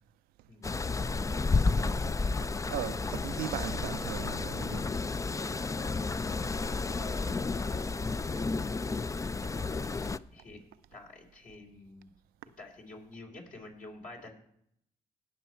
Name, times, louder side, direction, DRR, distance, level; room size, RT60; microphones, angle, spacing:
sound 1, 0.6-10.2, left 3 dB, 20° left, 0.4 m, -31 dB
voice 1, 2.7-4.9, right 13 dB, 80° right, 0.5 m, -38 dB
voice 2, 6.9-7.8 10.3-10.6 10.9-12.1 12.6-14.3, left 2 dB, 60° left, 3.4 m, -48 dB
17.5 x 6.2 x 4.5 m
hypercardioid pair, 50°, 15 cm